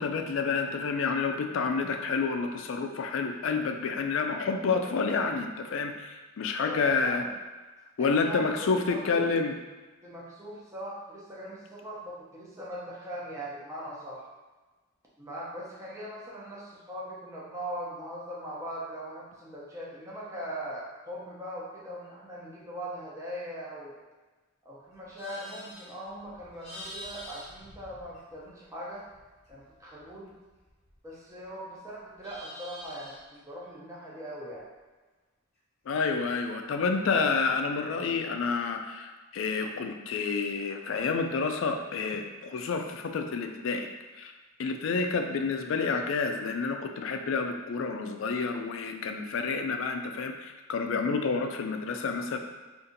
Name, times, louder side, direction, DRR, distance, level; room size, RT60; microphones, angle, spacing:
voice 1, 0.0-7.2 8.0-9.5 35.9-43.9 44.1-44.3 44.6-52.4, left 4 dB, 65° left, 5 dB, 0.3 m, -29 dB
voice 2, 6.6-7.3 8.0-9.3 10.0-14.3 15.2-24.0 24.6-29.0 29.5-30.3 31.0-34.7, equal, 15° right, -6 dB, 0.6 m, -40 dB
Livestock farm animals working animals, 24.9-28.6 28.9-31.5 31.8-33.4, equal, 30° left, 0.6 m, -47 dB
2.7 x 2.5 x 3.8 m, 1.3 s
head